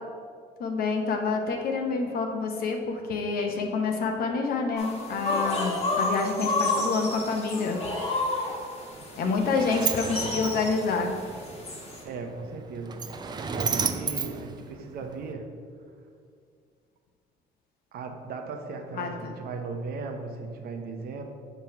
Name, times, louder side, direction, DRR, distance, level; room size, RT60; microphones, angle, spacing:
voice 1, 0.6-7.8 9.2-11.2 18.9-19.3, left 4 dB, 65° left, 3 dB, 0.8 m, -28 dB
sound 1, 4.8-12.0, left 2 dB, 35° left, 1.3 m, -31 dB
sound 2, 5.1-6.4 7.5-8.8, left 2 dB, 20° left, 1.3 m, -36 dB
Sliding door, 8.9-15.3, right 5 dB, 25° right, 0.4 m, -34 dB
voice 2, 12.0-13.0 13.5-15.5 17.9-21.2, right 4 dB, 65° right, 4 dB, 0.8 m, -37 dB
6.7 x 3.0 x 5.8 m, 2.1 s
cardioid pair, 110°, 17 cm